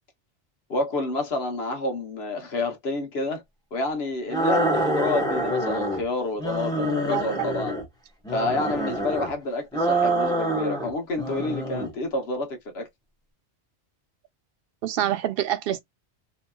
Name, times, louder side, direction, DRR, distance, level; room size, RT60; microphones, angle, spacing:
voice 1, 0.7-3.4 3.7-7.7 8.3-12.9, left 2 dB, 65° left, 1.1 m, -29 dB
sound 1, 4.3-6.0 6.4-7.9 8.2-9.3 9.7-10.9 11.2-11.9, right 1 dB, 5° left, 1.0 m, -26 dB
voice 2, 7.1-7.5 14.8-15.8, right 12 dB, 65° right, 0.7 m, -26 dB
2.8 x 2.8 x 2.2 m
omnidirectional pair, 1.1 m